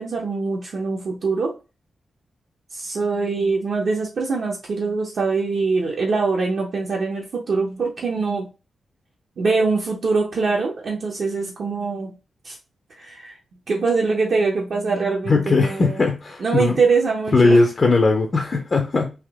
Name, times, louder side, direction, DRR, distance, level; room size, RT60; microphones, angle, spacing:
voice 1, 0.0-1.5 2.7-8.5 9.4-12.1 12.4-12.6 13.0-13.4 13.7-16.0 16.4-17.6, right 4 dB, 50° right, -1 dB, 0.7 m, -23 dB
voice 2, 15.3-16.7 17.3-19.1, left 3 dB, 30° left, 4 dB, 0.5 m, -18 dB
3.6 x 2.8 x 3.4 m, 0.31 s
wide cardioid pair, 175°, 0 cm